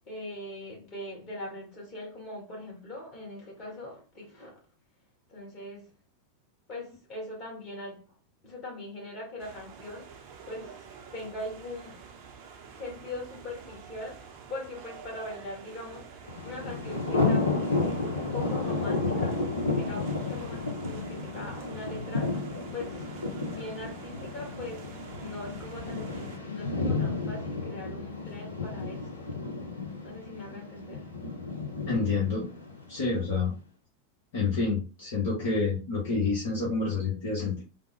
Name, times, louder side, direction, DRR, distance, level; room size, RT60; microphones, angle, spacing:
voice 1, 0.0-4.6 5.3-5.9 6.7-8.2 8.4-12.1 12.6-23.1 23.5-29.3 29.8-31.1, left 1 dB, 30° left, 1.6 m, -41 dB
sound 1, 9.4-26.4, right 6 dB, 45° right, 0.6 m, -48 dB
Thunder, 16.3-33.3, left 3 dB, 80° left, 0.7 m, -32 dB
voice 2, 31.9-32.5 32.9-33.5 34.3-37.6, left 4 dB, 55° left, 1.0 m, -28 dB
3.4 x 2.1 x 3.1 m
figure-of-eight pair, 90°, 0 cm